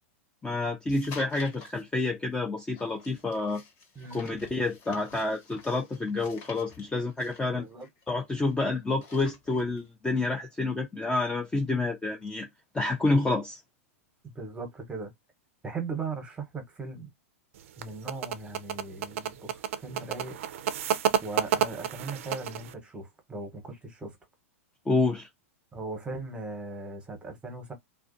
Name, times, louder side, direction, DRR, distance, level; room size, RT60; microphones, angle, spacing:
voice 1, 0.4-3.6 4.1-7.6 8.1-12.5 12.7-13.6 24.9-25.3, left 3 dB, 10° left, 0.4 m, -28 dB
sound 1, 0.9-1.8 2.7-8.5 8.8-9.8, left 5 dB, 40° left, 1.1 m, -49 dB
voice 2, 4.0-4.3 7.5-7.9 14.3-15.1 15.6-17.1 17.8-20.4 21.2-24.1 25.7-27.7, right 3 dB, 15° right, 0.9 m, -38 dB
sound 2, 17.6-22.7, right 9 dB, 65° right, 0.4 m, -30 dB
2.3 x 2.2 x 2.5 m
hypercardioid pair, 115°, 8 cm